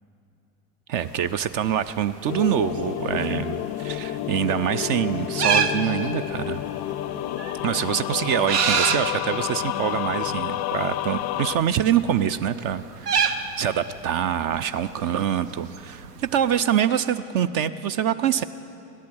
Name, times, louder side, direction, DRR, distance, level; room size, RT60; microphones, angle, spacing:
voice 1, 0.9-6.6 7.6-16.1 16.3-18.4, right 9 dB, 45° right, 15 dB, 0.5 m, -25 dB
sound 1, 1.0-16.6, right 6 dB, 85° right, 0.9 m, -31 dB
sound 2, 2.3-11.6, left 13 dB, 35° left, 0.4 m, -30 dB
16.5 x 11.5 x 6.2 m, 2.8 s
hypercardioid pair, 80°, 46 cm